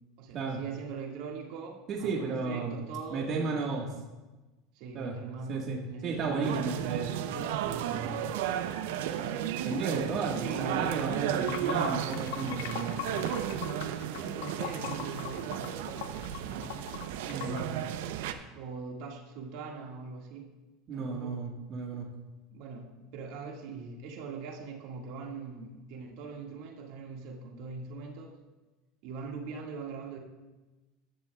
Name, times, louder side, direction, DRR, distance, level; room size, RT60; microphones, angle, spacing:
voice 1, 0.2-3.8 4.7-6.8 9.1-9.3 10.2-11.0 13.8-16.0 16.4-16.7 18.5-20.5 20.9-21.4 22.5-28.4 29.0-30.2, right 4 dB, 65° right, 0 dB, 1.9 m, -42 dB
voice 2, 1.9-2.7 3.1-3.9 4.9-5.1 5.5-5.8 6.0-7.1 7.6-8.1 9.6-13.0 17.3-17.7 20.9-22.0, right 4 dB, 45° right, -1 dB, 1.6 m, -33 dB
sound 1, 6.4-18.3, right 10 dB, 80° right, 0.7 m, -34 dB
Water / Sink (filling or washing), 11.2-17.6, left 10 dB, 80° left, 0.9 m, -40 dB
14.5 x 11.0 x 2.3 m, 1.2 s
supercardioid pair, 120°, 0 cm